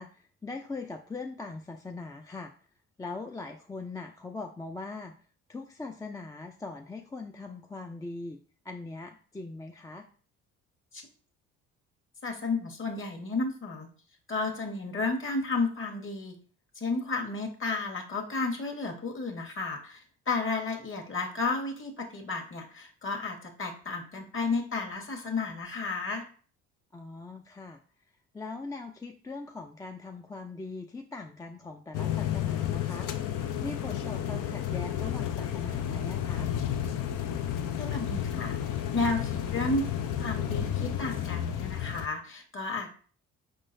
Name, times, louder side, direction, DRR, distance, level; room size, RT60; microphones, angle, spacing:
voice 1, 0.0-2.5 3.0-5.1 5.5-8.4 8.6-10.1 26.9-27.8 28.3-33.1 33.6-36.5, left 3 dB, 10° left, 3 dB, 0.4 m, -41 dB
voice 2, 12.2-13.9 14.3-16.4 16.7-26.3 37.8-39.9 40.2-42.9, left 3 dB, 40° left, 3 dB, 1.4 m, -32 dB
sound 1, 31.9-42.1, left 10 dB, 65° left, 0.6 m, -31 dB
5.0 x 3.7 x 2.6 m, 0.42 s
supercardioid pair, 65°, 33 cm